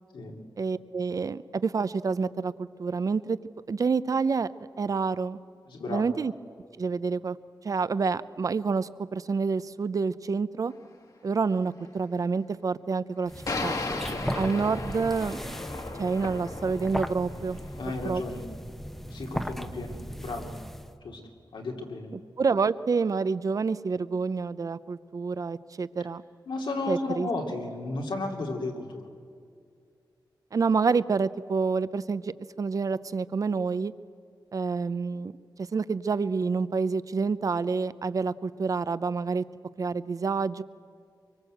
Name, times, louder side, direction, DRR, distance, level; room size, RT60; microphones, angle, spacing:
voice 1, 0.6-3.4 3.7-4.5 4.8-5.4 5.9-6.3 6.8-7.4 7.6-10.7 11.2-13.3 13.6-13.8 14.4-15.4 16.0-17.6 18.0-18.2 22.1-26.2 26.9-27.3 30.5-33.9 34.5-35.3 35.7-39.4 39.8-40.6, right 4 dB, 45° right, 16 dB, 0.6 m, -28 dB
voice 2, 5.7-6.1 14.1-14.3 17.8-18.4 19.1-20.5 21.0-21.2 21.5-22.1 26.5-29.1, left 2 dB, 85° left, 1 dB, 3.0 m, -34 dB
sound 1, 10.7-10.8 13.5-17.8, left 3 dB, 50° left, 1.9 m, -36 dB
sound 2, 13.3-21.0, equal, 5° left, 0.9 m, -37 dB
24.5 x 24.0 x 7.9 m, 2.3 s
wide cardioid pair, 155°, 8 cm